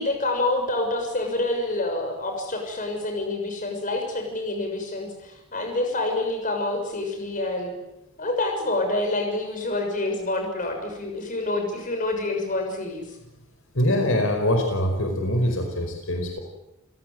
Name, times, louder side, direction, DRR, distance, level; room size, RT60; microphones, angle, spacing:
voice 1, 0.0-7.7 8.2-13.0, left 2 dB, 40° left, 3 dB, 6.5 m, -27 dB
voice 2, 13.7-16.4, left 1 dB, 70° left, 4 dB, 4.8 m, -23 dB
30.0 x 17.0 x 9.4 m, 0.93 s
head